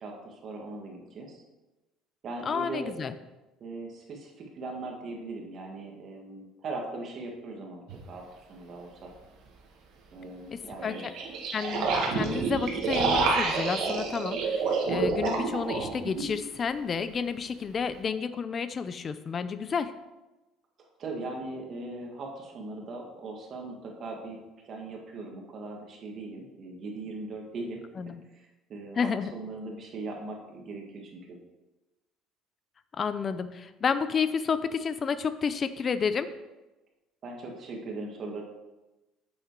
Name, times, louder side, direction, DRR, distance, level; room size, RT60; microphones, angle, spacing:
voice 1, 0.0-1.4 2.2-2.9 3.6-9.1 10.1-11.1 21.0-24.4 24.7-27.8 28.3-31.4 37.2-38.4, right 2 dB, 35° right, 1 dB, 1.7 m, -39 dB
voice 2, 2.5-3.2 10.5-11.1 11.5-19.9 28.0-28.2 29.0-29.3 33.0-36.3, left 6 dB, 25° left, 13 dB, 0.4 m, -30 dB
sound 1, 7.9-8.0 10.8-16.3, right 4 dB, 50° right, 1.5 m, -28 dB
8.9 x 7.2 x 4.6 m, 1.1 s
cardioid pair, 175°, 0 cm